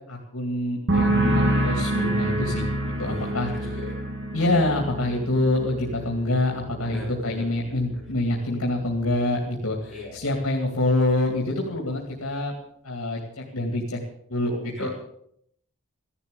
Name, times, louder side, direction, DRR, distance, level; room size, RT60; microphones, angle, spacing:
voice 1, 0.1-2.7 3.0-3.8 4.3-12.6 12.8-14.0 14.3-14.9, left 2 dB, 75° left, 0 dB, 2.4 m, -26 dB
sound 1, 0.9-8.3 8.6-9.2, right 1 dB, 55° right, 2.6 m, -27 dB
voice 2, 3.0-4.0 6.8-7.7 9.9-10.1 14.4-14.9, left 1 dB, 10° right, -9 dB, 6.3 m, -39 dB
15.0 x 11.5 x 6.9 m, 0.71 s
head